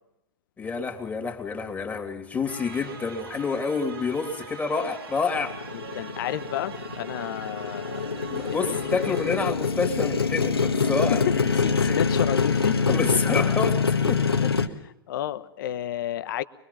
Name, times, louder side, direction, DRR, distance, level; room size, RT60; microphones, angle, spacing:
voice 1, 0.6-5.6 8.3-11.2 11.8-12.0 12.9-14.4, left 4 dB, 15° left, 4 dB, 3.1 m, -28 dB
sound 1, 2.5-9.5, right 6 dB, 70° right, 2.6 m, -41 dB
Motorcycle, 5.3-14.7, left 5 dB, 85° left, 1.6 m, -25 dB
voice 2, 5.7-8.1 8.5-9.2 10.8-12.8 14.4-14.5 14.8-16.4, left 12 dB, 60° left, 14 dB, 1.1 m, -32 dB
24.0 x 21.5 x 5.6 m, 0.83 s
figure-of-eight pair, 100°, 13 cm